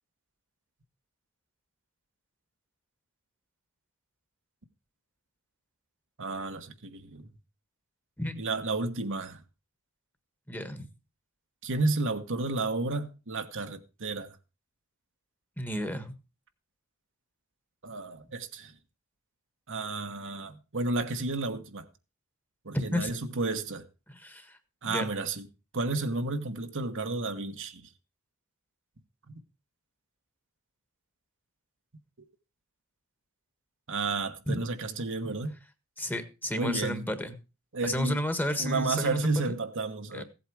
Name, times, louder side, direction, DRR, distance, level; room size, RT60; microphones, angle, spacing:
voice 1, 6.2-7.3 8.4-9.4 11.6-14.4 17.8-18.7 19.7-21.9 22.6-23.9 24.8-25.5 25.7-27.9 29.3-29.4 33.9-35.6 36.5-37.1 37.7-38.2 38.6-40.2, right 3 dB, 60° right, 1.3 m, -32 dB
voice 2, 10.5-10.9 15.6-16.1 22.7-23.1 24.1-24.6 24.8-25.1 34.5-34.6 35.2-35.4 36.0-37.3 37.8-39.5 40.1-40.2, left 1 dB, 10° left, 1.5 m, -32 dB
16.0 x 8.3 x 4.8 m
head